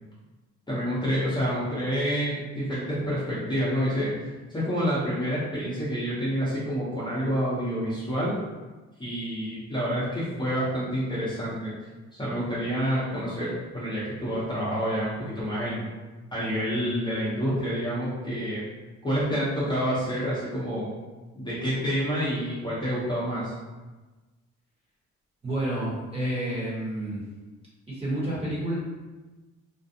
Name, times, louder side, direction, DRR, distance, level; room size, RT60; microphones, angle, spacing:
voice 1, 0.7-8.3 9.0-11.7 12.2-15.8 16.3-18.6 19.0-20.9 21.4-23.5, equal, 15° left, -10 dB, 0.8 m, -28 dB
voice 2, 25.4-27.2 27.9-28.7, right 1 dB, 20° right, -7 dB, 1.2 m, -29 dB
2.5 x 2.2 x 2.7 m, 1.2 s
cardioid pair, 90°, 30 cm